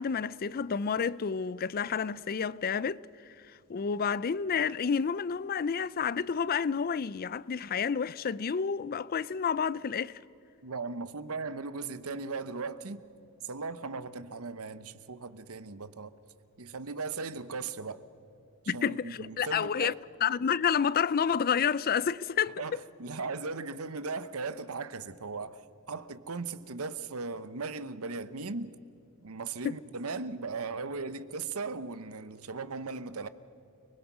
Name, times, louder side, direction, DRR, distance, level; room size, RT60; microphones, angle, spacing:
voice 1, 0.0-3.0 3.7-10.2 18.7-19.9 20.2-22.8 29.6-29.8, left 6 dB, 45° left, 0.4 m, -29 dB
voice 2, 10.6-13.1 13.4-16.1 16.6-18.0 18.6-20.0 22.6-28.7 29.2-33.3, right 4 dB, 85° right, 1.0 m, -38 dB
30.0 x 20.5 x 6.2 m
head